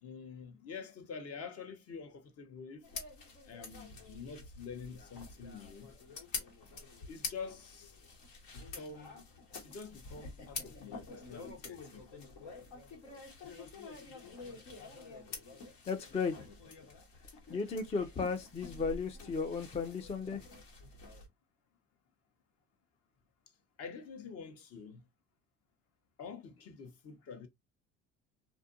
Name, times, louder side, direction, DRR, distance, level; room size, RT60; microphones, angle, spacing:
voice 1, 0.0-2.9 3.4-5.9 7.1-7.9 8.5-9.2 9.6-12.1 23.8-25.0 26.2-27.5, left 5 dB, 45° left, 0.8 m, -47 dB
sound 1, 2.8-21.3, left 4 dB, 85° left, 1.3 m, -47 dB
voice 2, 15.9-16.4 17.5-20.4, left 5 dB, 20° left, 0.4 m, -35 dB
2.6 x 2.5 x 2.5 m
supercardioid pair, 90°, 33 cm